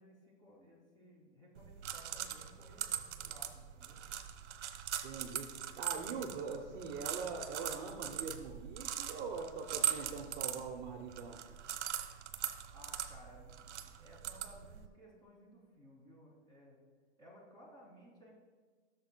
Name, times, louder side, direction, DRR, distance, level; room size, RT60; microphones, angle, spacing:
voice 1, 0.0-4.0 12.7-16.8 17.2-18.3, equal, 10° left, -4 dB, 2.5 m, -59 dB
sound 1, 1.6-14.9, right 9 dB, 75° right, 0.8 m, -41 dB
voice 2, 5.0-5.5 5.8-11.4, right 5 dB, 35° right, 1 dB, 0.8 m, -42 dB
16.5 x 6.6 x 2.2 m, 1.4 s
hypercardioid pair, 135°, 34 cm